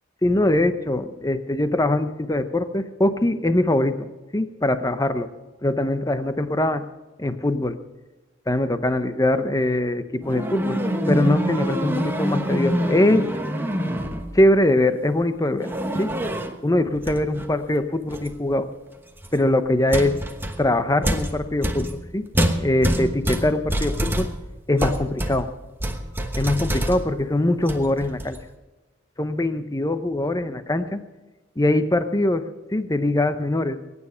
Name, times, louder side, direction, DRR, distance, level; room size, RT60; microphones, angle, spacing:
voice 1, 0.2-5.3 5.6-6.8 7.2-7.8 8.5-10.8 11.1-13.3 14.3-16.1 16.6-18.7 19.3-20.2 20.6-22.2 22.6-24.3 24.7-25.5 26.4-28.4 29.2-31.0 31.6-33.8, left 1 dB, 20° left, 10 dB, 0.8 m, -22 dB
sound 1, 10.2-14.4 15.6-16.6 17.0-17.5 18.1-18.4 19.2-19.4 19.9-27.3 27.6-28.4, equal, 10° right, 1.1 m, -26 dB
22.0 x 9.7 x 5.7 m, 1.1 s
head